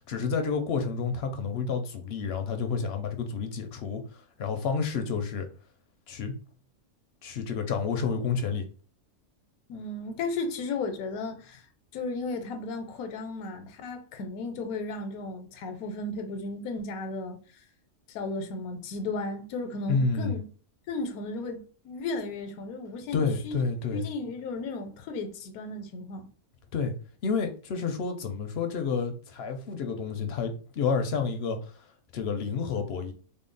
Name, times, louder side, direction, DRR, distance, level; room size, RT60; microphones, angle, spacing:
voice 1, 0.1-5.5 6.1-6.3 7.2-8.7 19.9-20.4 23.1-24.1 26.7-26.9 27.2-31.8 32.1-33.1, left 5 dB, 65° left, 0.6 m, -30 dB
voice 2, 9.7-11.6 11.9-17.4 18.1-20.5 20.9-23.6 23.9-26.3, left 3 dB, 85° left, 1.1 m, -35 dB
3.6 x 2.0 x 3.8 m
omnidirectional pair, 1.5 m